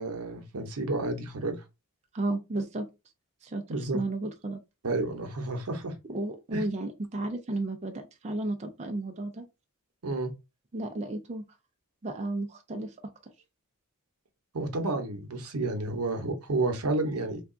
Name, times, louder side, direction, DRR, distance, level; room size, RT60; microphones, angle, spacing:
voice 1, 0.0-1.6 3.7-4.0 4.8-5.9 6.5-6.6 10.0-10.3 14.5-17.4, right 2 dB, 80° right, 0.8 m, -30 dB
voice 2, 2.1-2.9 3.4-4.6 6.0-9.4 10.7-11.4 12.0-12.9, right 2 dB, 30° right, 0.5 m, -33 dB
3.4 x 2.3 x 3.7 m
head